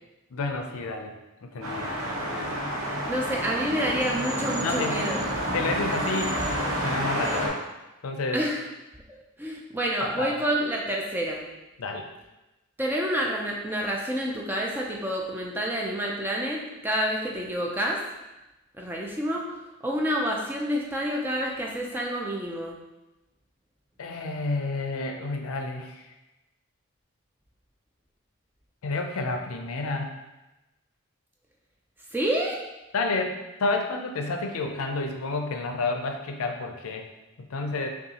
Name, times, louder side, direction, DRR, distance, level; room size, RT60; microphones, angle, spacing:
voice 1, 0.3-1.1 1.5-2.6 4.6-5.1 5.5-6.4 6.8-7.6 8.0-8.4 10.0-10.3 11.8-12.0 24.0-26.0 28.8-30.1 32.9-37.1 37.5-37.9, left 3 dB, 75° left, 4 dB, 0.5 m, -30 dB
sound 1, 1.6-7.5, equal, 70° right, 1.0 m, -29 dB
voice 2, 3.1-5.2 8.3-8.7 9.1-11.4 12.8-18.0 18.8-19.4 19.8-22.8 32.1-32.6, equal, 10° right, -2 dB, 0.3 m, -28 dB
5.4 x 2.3 x 2.8 m, 1.0 s
head